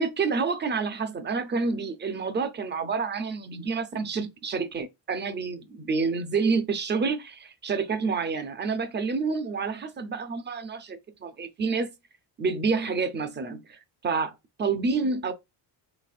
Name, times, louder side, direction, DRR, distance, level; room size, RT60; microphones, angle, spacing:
voice 1, 0.0-11.9 12.4-15.3, right 4 dB, 25° right, 0.5 m, -28 dB
4.1 x 3.4 x 2.5 m
cardioid pair, 130°, 47 cm